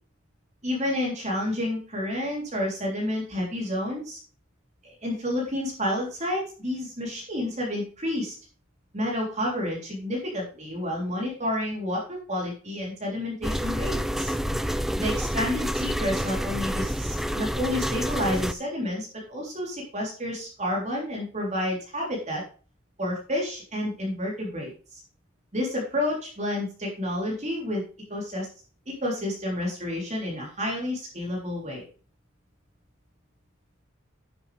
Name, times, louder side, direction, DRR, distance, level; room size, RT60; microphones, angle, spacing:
voice 1, 0.6-4.2 4.8-8.3 8.9-14.3 15.0-22.4 23.0-25.0 25.5-27.8 28.1-28.5 28.9-31.9, left 1 dB, 35° right, -2 dB, 3.5 m, -30 dB
sound 1, 13.4-18.5, equal, ahead, 0.4 m, -28 dB
10.5 x 8.0 x 3.4 m, 0.38 s
head